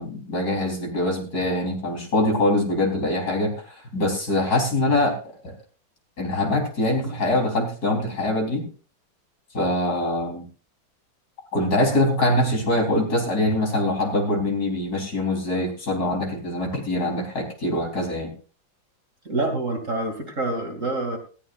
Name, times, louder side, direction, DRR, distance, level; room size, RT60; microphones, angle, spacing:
voice 1, 0.0-3.5 3.9-5.2 5.4-5.5 6.2-8.7 9.5-10.5 11.5-18.3, left 1 dB, 50° left, 1 dB, 4.1 m, -23 dB
voice 2, 19.2-21.2, right 2 dB, 40° right, 3 dB, 2.8 m, -26 dB
19.0 x 14.5 x 2.5 m, 0.37 s
omnidirectional pair, 2.1 m